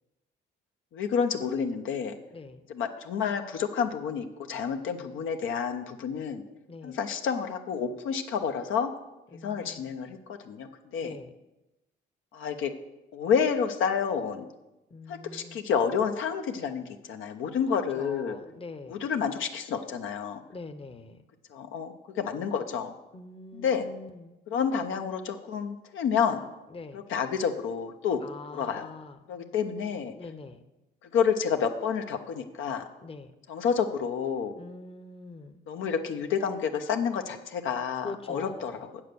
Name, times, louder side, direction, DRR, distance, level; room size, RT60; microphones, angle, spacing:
voice 1, 0.9-2.2 2.7-6.4 6.8-8.9 9.4-10.2 10.4-10.7 10.9-11.1 12.3-12.7 13.1-14.4 15.1-18.4 18.9-20.4 21.5-22.9 23.5-23.8 24.5-26.4 26.9-28.2 28.5-28.9 29.3-30.1 31.1-32.9 33.5-34.6 35.7-38.7, left 7 dB, 75° left, 5 dB, 0.9 m, -29 dB
voice 2, 2.3-2.6 6.7-7.0 9.3-9.9 11.0-11.3 14.9-15.6 17.7-19.1 20.5-21.2 23.1-24.4 26.7-27.0 28.2-29.2 30.2-30.6 33.0-33.3 34.6-35.6 38.0-38.8, left 3 dB, 25° left, 8 dB, 0.9 m, -43 dB
8.0 x 7.3 x 6.8 m, 0.99 s
supercardioid pair, 70°, 21 cm